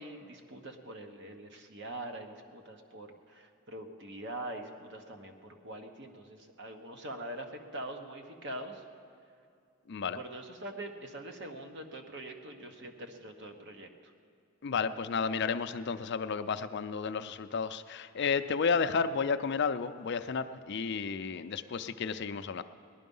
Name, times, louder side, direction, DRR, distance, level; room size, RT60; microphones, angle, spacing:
voice 1, 0.0-8.8 10.0-13.9, right 1 dB, 55° right, 5 dB, 1.1 m, -43 dB
voice 2, 9.9-10.2 14.6-22.6, left 5 dB, 50° left, 11 dB, 0.4 m, -32 dB
18.0 x 11.5 x 5.4 m, 2.5 s
head